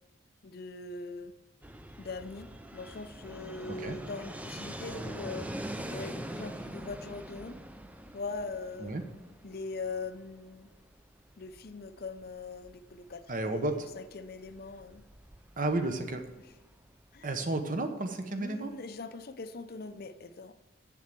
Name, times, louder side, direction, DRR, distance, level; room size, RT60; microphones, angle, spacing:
voice 1, 0.4-1.3 2.0-7.6 8.1-8.9 9.4-10.7 11.4-13.7 13.9-15.0 17.1-17.3 18.3-20.6, left 3 dB, 50° left, 0.6 m, -41 dB
Fixed-wing aircraft airplane, 1.6-17.3, right 1 dB, 5° right, 0.4 m, -44 dB
voice 2, 13.3-13.9 15.6-16.2 17.2-18.7, right 2 dB, 40° right, 1.0 m, -32 dB
7.7 x 7.4 x 7.5 m
head